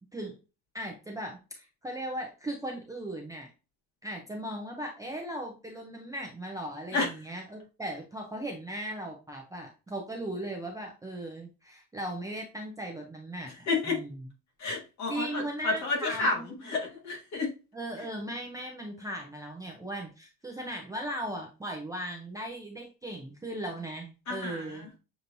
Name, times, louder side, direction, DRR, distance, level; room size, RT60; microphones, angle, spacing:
voice 1, 0.7-3.5 4.0-14.1 15.1-16.6 17.7-24.9, right 1 dB, 10° right, 0 dB, 0.5 m, -38 dB
voice 2, 13.7-14.0 14.6-16.4 16.6-17.5 24.3-24.9, left 3 dB, 45° left, -1 dB, 1.8 m, -30 dB
6.7 x 3.0 x 2.6 m, 0.31 s
cardioid pair, 175°, 38 cm